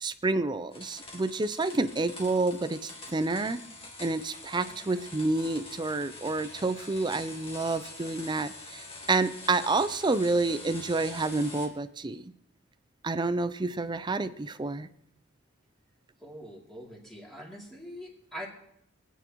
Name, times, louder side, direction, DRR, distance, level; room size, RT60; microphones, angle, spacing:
voice 1, 0.0-3.6 4.0-12.2 13.0-14.9, right 3 dB, 20° right, 12 dB, 0.5 m, -29 dB
sound 1, 0.7-11.7, left 2 dB, 25° left, 2.0 m, -45 dB
voice 2, 4.7-5.0 16.2-18.5, equal, ahead, -4 dB, 2.5 m, -44 dB
27.5 x 9.2 x 3.1 m, 0.76 s
head